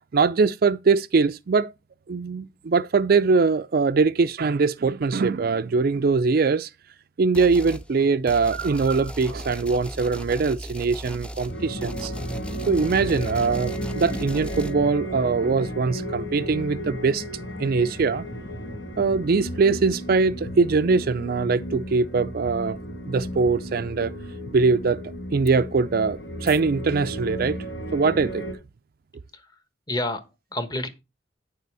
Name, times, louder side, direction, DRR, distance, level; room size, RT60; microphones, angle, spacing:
voice 1, 0.0-1.7 2.1-6.7 7.2-12.1 12.7-17.2 17.6-18.3 19.0-22.8 23.1-24.1 24.5-25.0 25.3-27.6 27.9-28.4, right 4 dB, 55° right, 0.4 m, -22 dB
sound 1, 7.3-7.9 8.3-14.7, equal, 5° left, 0.6 m, -37 dB
sound 2, 11.5-28.5, equal, 80° left, 2.8 m, -34 dB
sound 3, 19.5-20.2 20.5-21.1 21.5-22.0 22.5-22.6 23.5-23.6 24.5-24.6 25.5-25.6 26.5-26.6, left 4 dB, 55° left, 0.6 m, -42 dB
voice 2, 29.9-30.9, left 1 dB, 20° left, 1.2 m, -30 dB
9.4 x 6.7 x 4.7 m
head